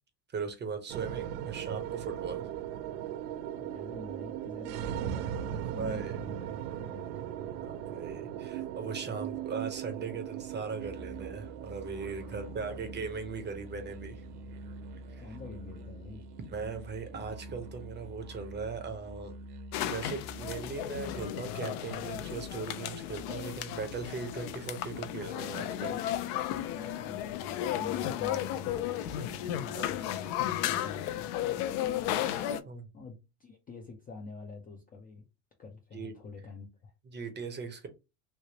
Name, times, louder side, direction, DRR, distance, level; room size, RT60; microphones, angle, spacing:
voice 1, 0.3-2.4 5.8-6.2 7.6-14.3 15.1-15.2 16.5-19.3 19.8-26.0 26.5-27.0 29.7-30.1 32.2-32.9 35.9-36.1 37.1-37.9, right 5 dB, 20° right, 0.7 m, -39 dB
sound 1, 0.9-19.3, right 11 dB, 80° right, 0.6 m, -39 dB
voice 2, 3.5-7.3 7.8-8.2 12.2-12.8 15.2-16.3 27.0-31.7 32.9-35.2 35.6-36.9, left 4 dB, 20° left, 0.4 m, -47 dB
sound 2, 10.8-21.3, right 1 dB, 50° right, 0.8 m, -46 dB
sound 3, 19.7-32.6, left 11 dB, 70° left, 0.6 m, -34 dB
3.2 x 2.8 x 2.8 m
supercardioid pair, 115°, 49 cm